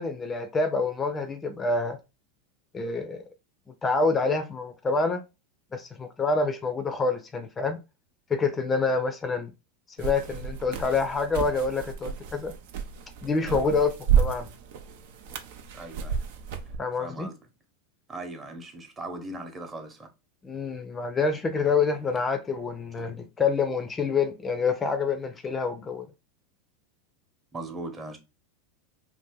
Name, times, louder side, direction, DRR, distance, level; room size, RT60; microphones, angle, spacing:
voice 1, 0.0-2.0 2.7-3.2 3.8-5.2 5.7-7.8 8.3-9.5 10.0-12.5 13.2-14.5 16.8-17.3 20.4-26.1, left 4 dB, 25° left, 0.5 m, -27 dB
sound 1, 10.0-16.8, right 8 dB, 65° right, 0.5 m, -31 dB
voice 2, 15.7-16.2 17.0-17.4 18.1-20.1 21.7-21.8 27.5-28.2, right 2 dB, 25° right, 0.9 m, -39 dB
2.7 x 2.5 x 3.6 m
hypercardioid pair, 100°, 0 cm